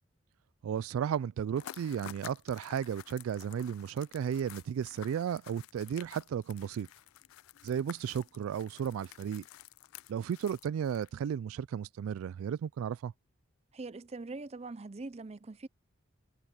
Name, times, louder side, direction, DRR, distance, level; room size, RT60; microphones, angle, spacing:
voice 1, 0.6-6.9 7.6-9.5 10.1-13.1, right 8 dB, 90° right, 0.3 m, -34 dB
sound 1, 1.5-11.3, left 12 dB, 90° left, 0.3 m, -51 dB
voice 2, 13.7-15.7, right 3 dB, 30° right, 0.5 m, -42 dB
head